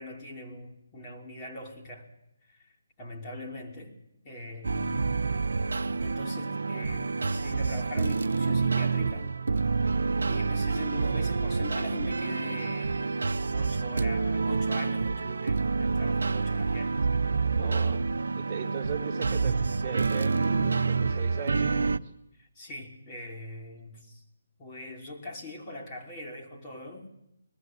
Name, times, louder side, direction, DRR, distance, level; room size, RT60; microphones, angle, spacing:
voice 1, 0.0-2.1 2.5-2.7 3.0-3.9 4.2-5.2 6.0-9.3 10.3-13.2 13.5-17.0 22.4-24.2 24.6-27.1, left 1 dB, 25° left, -2 dB, 3.3 m, -42 dB
sound 1, 4.6-22.0, right 4 dB, 70° right, 0.7 m, -28 dB
voice 2, 17.6-18.1 18.4-22.0, right 6 dB, 25° right, 0 dB, 2.6 m, -38 dB
20.0 x 14.0 x 9.2 m, 0.82 s
figure-of-eight pair, 150°, 0 cm